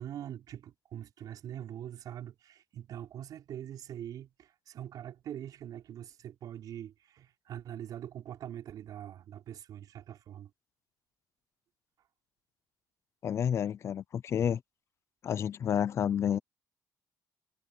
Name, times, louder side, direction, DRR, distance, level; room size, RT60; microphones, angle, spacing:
voice 1, 0.0-10.5, right 10 dB, 60° right, 5.6 m, -43 dB
voice 2, 13.2-14.6 15.2-16.4, left 8 dB, 40° left, 0.5 m, -30 dB
cardioid pair, 155°, 7 cm